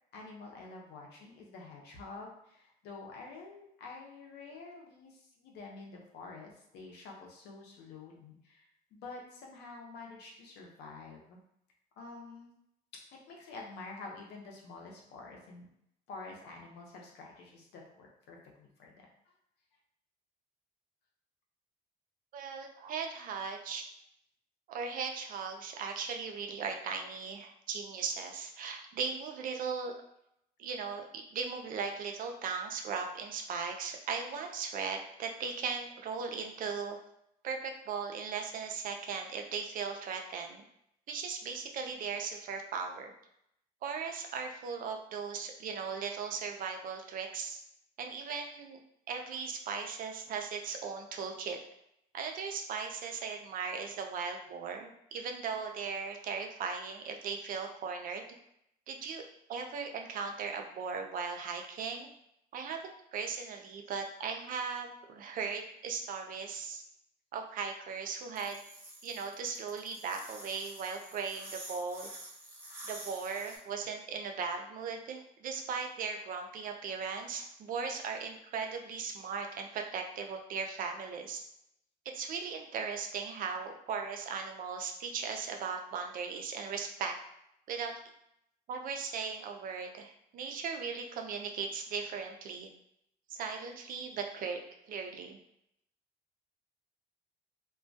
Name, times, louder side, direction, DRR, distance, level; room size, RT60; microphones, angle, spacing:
voice 1, 0.1-11.4 12.0-12.5 12.9-15.7 16.1-19.0, left 3 dB, 80° left, 0 dB, 0.6 m, -48 dB
voice 2, 22.3-23.8 24.7-29.9 30.6-37.0 37.4-40.6 41.1-43.1 43.8-47.6 48.0-48.8 49.1-51.6 52.1-58.2 58.9-59.2 59.5-62.1 62.5-66.8 67.3-68.6 69.0-72.1 72.9-81.4 82.1-87.1 87.7-87.9 88.7-92.7 93.3-95.4, right 5 dB, 55° right, 3 dB, 0.4 m, -38 dB
sound 1, 68.4-73.6, right 1 dB, 15° right, 0.7 m, -47 dB
2.2 x 2.1 x 2.6 m, 0.75 s
cardioid pair, 110°, 17 cm